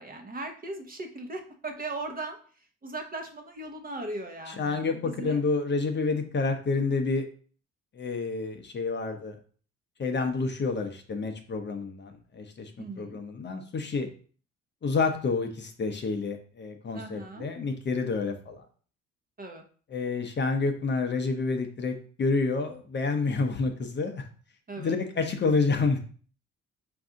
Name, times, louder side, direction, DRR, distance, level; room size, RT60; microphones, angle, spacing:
voice 1, 0.0-2.4 2.8-5.4 12.8-13.2 16.9-17.5 19.4-19.6 24.7-25.0, right 2 dB, 30° right, 4 dB, 0.8 m, -38 dB
voice 2, 4.5-7.2 8.0-9.4 10.0-12.7 13.0-14.1 14.8-18.6 19.9-24.2 24.8-26.0, left 4 dB, 35° left, 5 dB, 0.6 m, -29 dB
4.7 x 2.6 x 3.6 m, 0.42 s
cardioid pair, 90°, 30 cm